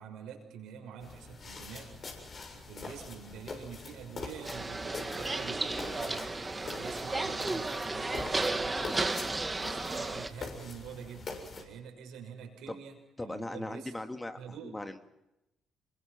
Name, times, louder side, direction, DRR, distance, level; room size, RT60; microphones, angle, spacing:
voice 1, 0.0-2.0 2.5-8.9 9.5-12.9 13.2-13.9 14.4-14.8, right 7 dB, 70° right, 3 dB, 6.1 m, -47 dB
sound 1, 1.0-11.6, left 4 dB, 50° left, 7.2 m, -44 dB
sound 2, 4.4-10.3, right 2 dB, 25° right, 2.3 m, -33 dB
voice 2, 13.2-15.2, left 1 dB, 15° left, 7 dB, 2.1 m, -40 dB
27.5 x 23.0 x 6.0 m, 0.91 s
hypercardioid pair, 45°, 0 cm